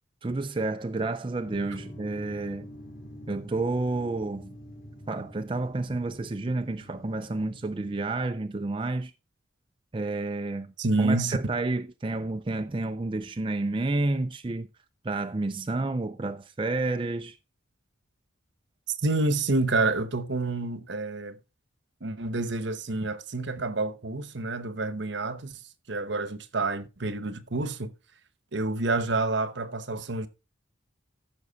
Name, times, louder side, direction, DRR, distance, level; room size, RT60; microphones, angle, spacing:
voice 1, 0.2-2.7 3.3-4.5 5.1-9.1 9.9-10.7 11.0-14.7 15.0-17.4, right 2 dB, 25° right, 0.4 m, -30 dB
sound 1, 1.4-8.0, equal, 45° left, 3.7 m, -46 dB
voice 2, 10.8-11.4 18.9-21.4 22.0-25.6 25.9-27.9 28.5-30.3, right 2 dB, 60° right, 1.0 m, -28 dB
14.5 x 6.2 x 4.0 m
head